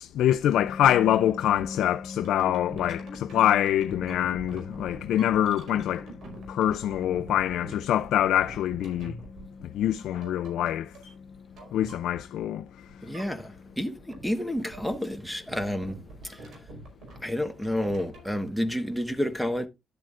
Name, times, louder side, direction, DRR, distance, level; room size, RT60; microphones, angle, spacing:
voice 1, 0.0-6.1 6.5-9.1 9.6-10.9 11.7-12.6, left 11 dB, 80° left, 0.4 m, -25 dB
sound 1, 0.5-15.4, left 4 dB, 30° left, 2.1 m, -43 dB
sound 2, 1.0-1.2 1.6-12.6 12.9-13.7 14.0-18.3, right 2 dB, 65° right, 4.5 m, -45 dB
voice 2, 13.0-16.0 16.2-16.5 17.2-19.7, equal, ahead, 1.2 m, -30 dB
12.0 x 7.6 x 2.5 m
cardioid pair, 90°, 0 cm